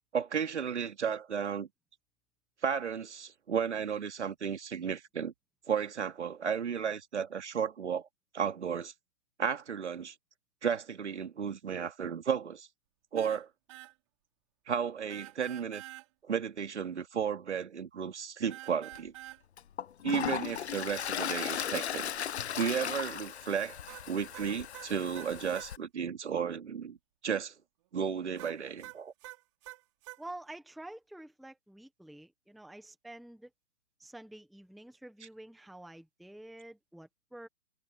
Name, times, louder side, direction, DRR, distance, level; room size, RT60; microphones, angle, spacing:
voice 1, 0.1-1.7 2.6-5.3 5.7-8.1 8.3-8.9 9.4-10.1 10.6-12.7 13.1-13.5 14.7-15.8 16.2-19.1 20.0-22.1 22.6-23.8 24.1-27.0 27.2-27.5 27.9-29.1, right 7 dB, 75° right, 2.5 m, -33 dB
sound 1, 13.2-13.4 13.7-13.9 15.1-16.1 18.5-19.4 23.9-25.7 28.4-30.2, right 18 dB, 25° right, 3.6 m, -47 dB
Toilet flush, 18.9-19.0 19.6-25.8, left 9 dB, 65° left, 0.8 m, -37 dB
voice 2, 30.2-33.5 34.0-37.5, right 1 dB, ahead, 0.8 m, -48 dB
hypercardioid pair, 165°, 35 cm